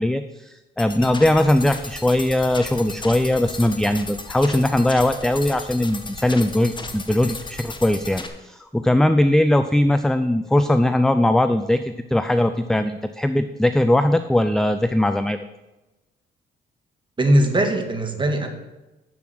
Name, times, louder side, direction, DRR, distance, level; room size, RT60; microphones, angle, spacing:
voice 1, 0.0-15.4, left 1 dB, ahead, 10 dB, 0.4 m, -20 dB
sound 1, 0.8-8.3, left 3 dB, 25° left, 1.4 m, -35 dB
voice 2, 17.2-18.5, right 1 dB, 25° right, 4 dB, 1.9 m, -19 dB
7.3 x 7.3 x 7.7 m, 1.0 s
cardioid pair, 90°, 20 cm